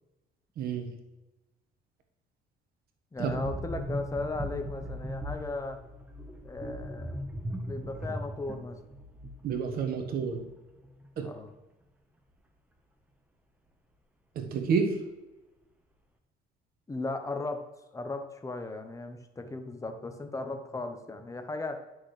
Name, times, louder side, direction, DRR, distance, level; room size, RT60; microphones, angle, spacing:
voice 1, 0.6-0.9 3.2-3.3 9.4-10.4 11.2-11.3 14.3-15.0, right 6 dB, 65° right, 4 dB, 1.3 m, -29 dB
voice 2, 3.1-5.8 6.4-7.3 7.6-8.8 11.2-11.5 16.9-21.8, left 2 dB, 20° left, 7 dB, 0.9 m, -36 dB
sound 1, 3.2-10.6 10.8-11.1, equal, 10° right, 1.1 m, -39 dB
10.0 x 6.3 x 3.3 m, 1.1 s
cardioid pair, 110°, 17 cm